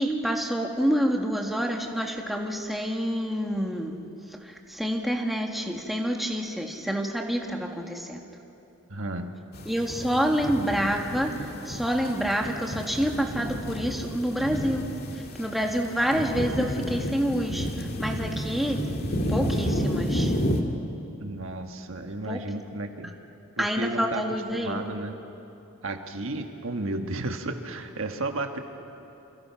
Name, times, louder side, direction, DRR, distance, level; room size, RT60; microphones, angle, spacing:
voice 1, 0.0-3.9 4.3-8.3 9.6-18.8 19.3-20.3 22.2-22.4 23.6-24.8, equal, ahead, 1 dB, 1.7 m, -28 dB
voice 2, 8.9-9.5 21.2-23.2 23.6-24.3 24.5-25.2 25.8-28.6, right 2 dB, 65° right, 5 dB, 1.5 m, -33 dB
sound 1, 9.5-20.6, equal, 45° left, 2.0 m, -31 dB
28.0 x 26.0 x 5.8 m, 2.9 s
head